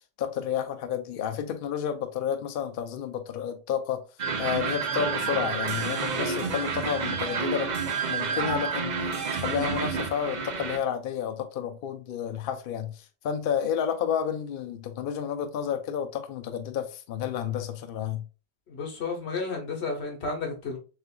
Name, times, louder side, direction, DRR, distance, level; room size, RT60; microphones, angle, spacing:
voice 1, 0.2-4.0 4.4-7.7 8.0-18.2, left 8 dB, 60° left, 0.7 m, -31 dB
sound 1, 4.2-10.8, right 5 dB, 50° right, 0.6 m, -29 dB
voice 2, 18.7-20.8, left 4 dB, 85° left, 1.3 m, -32 dB
6.4 x 2.5 x 2.2 m
omnidirectional pair, 1.1 m